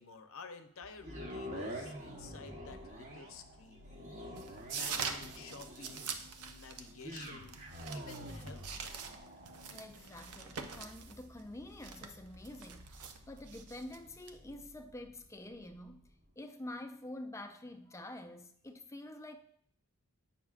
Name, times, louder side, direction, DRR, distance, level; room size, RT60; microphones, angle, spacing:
voice 1, 0.0-3.9 4.6-6.1 6.5-7.6 7.9-9.1, left 4 dB, 65° left, 0.6 m, -52 dB
sound 1, 0.8-16.4, left 2 dB, 50° right, 1.4 m, -63 dB
sound 2, 1.0-15.2 15.7-15.8, equal, 35° right, 1.0 m, -48 dB
sound 3, 4.4-14.7, right 6 dB, 90° right, 0.7 m, -45 dB
voice 2, 9.7-16.1 16.4-19.4, left 1 dB, 15° left, 0.4 m, -47 dB
8.7 x 5.8 x 2.4 m
head